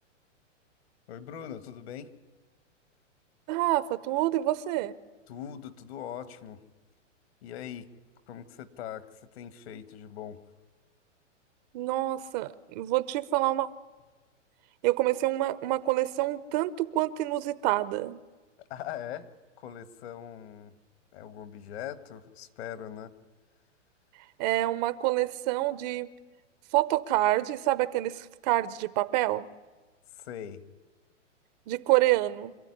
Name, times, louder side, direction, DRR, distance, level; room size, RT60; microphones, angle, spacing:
voice 1, 1.1-2.1 5.3-6.6 7.4-7.9 8.3-10.4 18.6-19.3 19.6-20.7 21.1-23.1 30.1-30.6, left 10 dB, 55° left, 12 dB, 1.7 m, -41 dB
voice 2, 3.5-4.9 11.7-13.7 14.8-18.2 24.4-26.1 26.7-29.5 31.7-32.5, right 16 dB, 35° right, 16 dB, 0.7 m, -27 dB
27.0 x 13.0 x 9.8 m, 1.3 s
hypercardioid pair, 130°, 38 cm